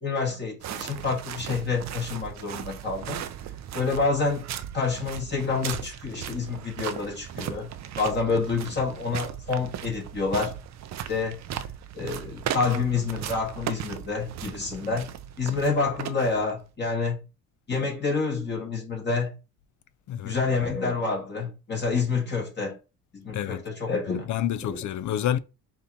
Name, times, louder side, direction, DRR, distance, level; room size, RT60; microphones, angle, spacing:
voice 1, 0.0-3.2 3.7-4.4 4.7-7.7 7.9-10.5 11.1-11.4 11.9-15.1 15.4-17.2 17.7-19.3 20.2-22.8 23.1-24.3 24.6-24.9, left 4 dB, 30° left, 1.5 m, -28 dB
sound 1, 0.6-16.7, right 10 dB, 50° right, 0.5 m, -37 dB
voice 2, 24.1-25.4, left 11 dB, 55° left, 0.5 m, -28 dB
5.4 x 2.9 x 2.7 m
cardioid pair, 120°, 35 cm